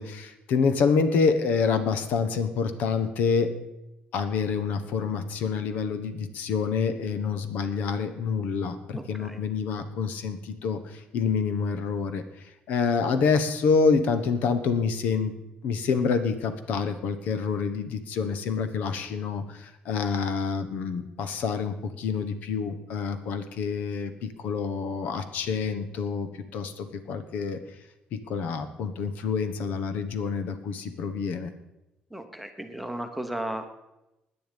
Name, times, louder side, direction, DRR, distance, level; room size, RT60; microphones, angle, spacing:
voice 1, 0.0-3.5 4.1-12.2 12.7-15.3 15.6-27.6 28.1-31.5, left 5 dB, 65° left, 10 dB, 1.2 m, -27 dB
voice 2, 8.9-9.4 32.1-33.7, right 1 dB, ahead, 7 dB, 1.0 m, -35 dB
17.0 x 10.0 x 5.3 m, 0.93 s
cardioid pair, 170°, 3 cm